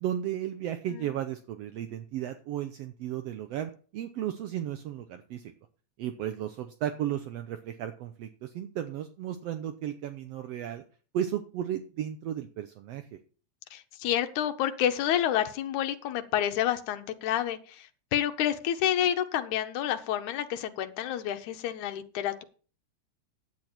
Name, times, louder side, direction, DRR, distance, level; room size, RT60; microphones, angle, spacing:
voice 1, 0.0-5.5 6.0-10.8 11.1-13.0, right 11 dB, 70° right, 8 dB, 1.6 m, -34 dB
voice 2, 13.7-22.4, left 11 dB, 85° left, 7 dB, 2.3 m, -29 dB
10.5 x 8.6 x 4.3 m, 0.39 s
omnidirectional pair, 3.3 m